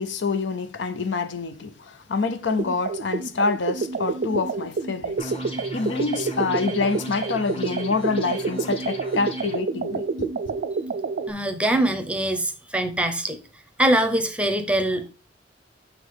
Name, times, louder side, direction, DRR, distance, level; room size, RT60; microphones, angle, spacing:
voice 1, 0.0-5.3 5.7-10.6, left 4 dB, 75° left, 0.6 m, -27 dB
sound 1, 2.6-11.3, right 4 dB, 55° right, 0.4 m, -28 dB
sound 2, 5.2-9.6, equal, 30° left, 1.1 m, -37 dB
voice 2, 11.3-13.4 13.8-15.1, right 1 dB, 5° right, 0.7 m, -23 dB
6.3 x 3.8 x 4.7 m
head